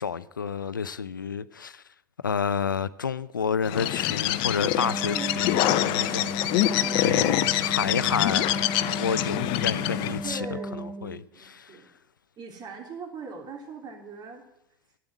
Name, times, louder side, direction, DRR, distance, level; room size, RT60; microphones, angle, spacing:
voice 1, 0.0-1.8 2.2-6.5 6.7-10.5 11.0-11.8, left 6 dB, 90° left, 0.5 m, -30 dB
Bird, 3.6-10.3, left 14 dB, 55° left, 0.8 m, -25 dB
Wind instrument woodwind instrument, 4.7-11.2, right 2 dB, 10° right, 1.1 m, -35 dB
voice 2, 5.1-5.7 6.8-7.0 10.2-11.9 12.4-14.4, right 4 dB, 40° right, 3.4 m, -40 dB
12.0 x 8.8 x 9.2 m
figure-of-eight pair, 75°, 10 cm